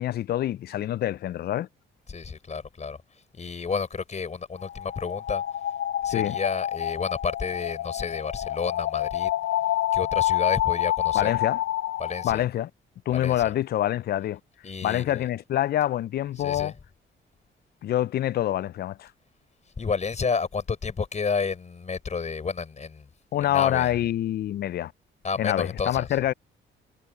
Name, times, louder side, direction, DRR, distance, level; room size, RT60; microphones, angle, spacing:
voice 1, 0.0-1.7 6.1-6.4 11.1-11.6 12.2-12.7 13.1-14.4 14.8-16.7 17.8-19.1 23.3-24.9 25.4-26.3, left 12 dB, 55° left, 0.4 m, -26 dB
voice 2, 2.1-5.6 6.0-9.3 9.9-11.3 12.0-12.4 13.1-13.5 14.6-15.3 16.4-16.8 19.6-23.1 23.4-24.0 25.2-26.2, left 5 dB, 35° left, 5.0 m, -31 dB
sound 1, 4.6-12.4, left 13 dB, 75° left, 0.8 m, -28 dB
cardioid pair, 90°, 20 cm